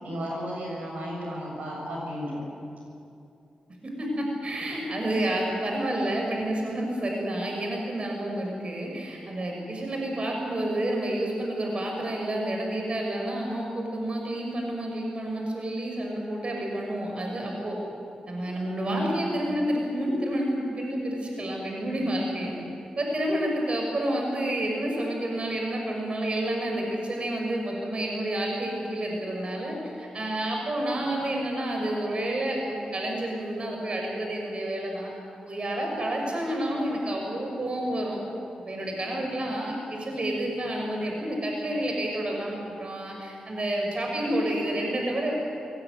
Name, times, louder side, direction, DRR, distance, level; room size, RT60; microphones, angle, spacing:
voice 1, 0.0-2.4 18.9-19.1, equal, 85° right, -2 dB, 7.0 m, -33 dB
voice 2, 4.0-17.8 18.3-22.5 23.0-35.1 35.5-38.2 38.6-45.3, right 1 dB, 50° right, 0 dB, 6.2 m, -29 dB
23.0 x 18.5 x 9.5 m, 2.6 s
cardioid pair, 55°, 3 cm